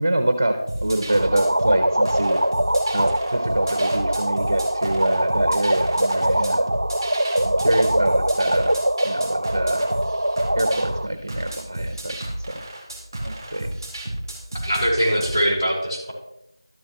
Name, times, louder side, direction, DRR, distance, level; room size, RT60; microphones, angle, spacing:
voice 1, 0.0-2.4 2.9-6.6 7.4-8.8 9.0-9.9 10.6-12.6 13.2-13.7, right 1 dB, 35° right, 7 dB, 0.9 m, -25 dB
sound 1, 0.7-15.4, right 1 dB, 10° right, 3.7 m, -32 dB
sound 2, 1.1-11.1, right 1 dB, 85° right, 0.5 m, -23 dB
voice 2, 14.6-16.1, equal, 20° left, -9 dB, 3.9 m, -22 dB
13.0 x 7.8 x 3.1 m, 0.80 s
figure-of-eight pair, 175°, 3 cm